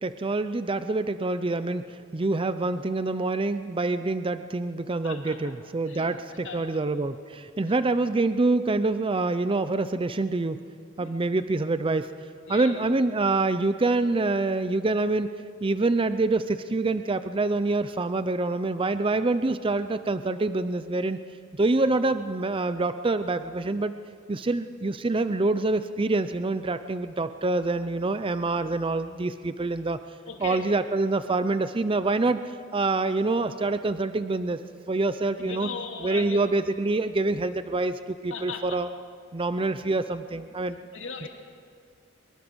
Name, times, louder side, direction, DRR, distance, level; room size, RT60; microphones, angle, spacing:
voice 1, 0.0-10.6 11.0-12.1 12.5-15.3 15.6-21.2 21.5-23.9 24.3-30.0 30.4-34.6 34.9-35.7 36.0-38.9 39.3-40.8, right 2 dB, 25° right, 11 dB, 0.6 m, -26 dB
voice 2, 5.0-5.4 5.9-6.8 7.6-7.8 11.0-11.2 12.5-12.9 30.3-30.7 35.4-36.4 38.3-38.8 39.8-39.9 40.3-40.4 40.9-41.3, left 5 dB, 65° left, 2 dB, 3.0 m, -38 dB
24.0 x 22.0 x 6.3 m, 2.2 s
head